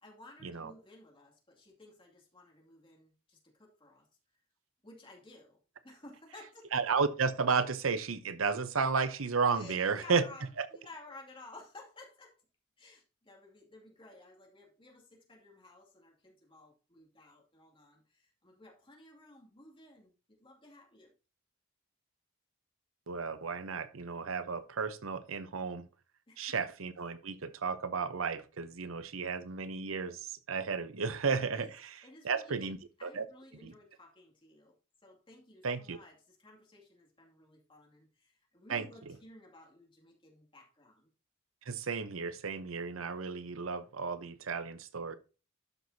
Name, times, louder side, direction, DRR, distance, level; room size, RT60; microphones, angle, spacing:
voice 1, 0.0-4.1 4.8-6.7 9.6-10.5 10.7-12.4 12.8-21.1 26.3-26.5 31.5-31.7 32.0-34.8 35.0-41.1, left 2 dB, 25° left, 2.4 m, -55 dB
voice 2, 6.7-10.3 10.6-10.7 23.1-25.9 26.4-33.3 33.6-33.7 35.6-36.0 38.7-39.2 41.6-45.2, right 5 dB, 85° right, 0.8 m, -33 dB
12.0 x 6.1 x 2.7 m
head